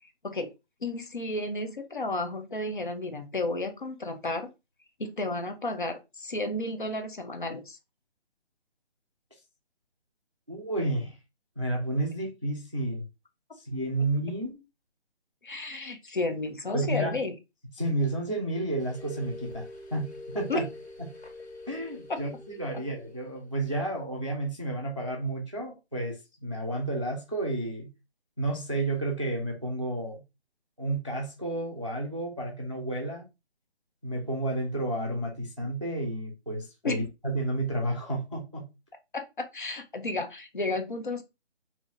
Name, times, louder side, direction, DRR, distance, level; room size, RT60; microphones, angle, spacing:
voice 1, 0.8-4.5 5.0-7.8 15.4-17.3 20.5-20.6 36.8-37.1 39.1-41.2, left 2 dB, 50° left, 0.7 m, -32 dB
voice 2, 10.5-11.2 11.6-13.0 13.6-14.6 16.7-17.2 17.8-20.7 21.0-21.1 21.7-22.3 22.6-27.9 28.4-30.2 30.8-33.3 34.0-38.7, right 1 dB, 30° right, 0.5 m, -31 dB
sound 1, 18.8-23.7, left 2 dB, 75° left, 2.1 m, -45 dB
4.8 x 2.8 x 2.5 m
hypercardioid pair, 175°, 33 cm